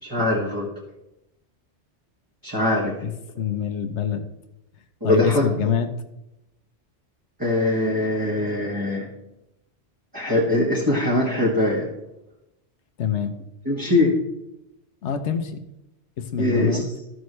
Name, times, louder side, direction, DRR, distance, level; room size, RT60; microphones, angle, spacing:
voice 1, 0.0-0.7 2.4-3.0 5.0-5.5 7.4-9.1 10.1-11.9 13.7-14.2 16.4-16.9, left 1 dB, 20° right, -5 dB, 1.8 m, -22 dB
voice 2, 3.4-4.2 5.0-5.9 13.0-13.3 15.0-15.6 16.2-16.8, left 8 dB, 85° left, 7 dB, 1.1 m, -25 dB
14.5 x 6.3 x 3.2 m, 0.87 s
omnidirectional pair, 1.1 m